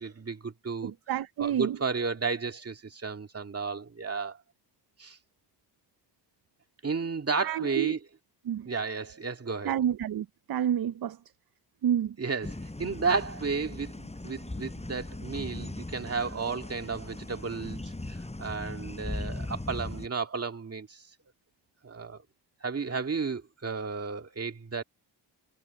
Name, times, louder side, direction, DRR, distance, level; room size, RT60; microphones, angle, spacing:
voice 1, 0.0-0.9 1.4-4.4 5.0-5.2 6.8-8.0 8.7-9.7 12.2-21.0 21.8-22.2 22.6-24.8, right 4 dB, 35° right, 2.3 m, -33 dB
voice 2, 0.8-1.8 7.4-7.9 8.5-8.7 9.6-11.2 11.8-12.1, right 10 dB, 60° right, 0.6 m, -29 dB
sound 1, 12.4-20.1, left 2 dB, 15° left, 8.0 m, -39 dB
wide cardioid pair, 120°, 42 cm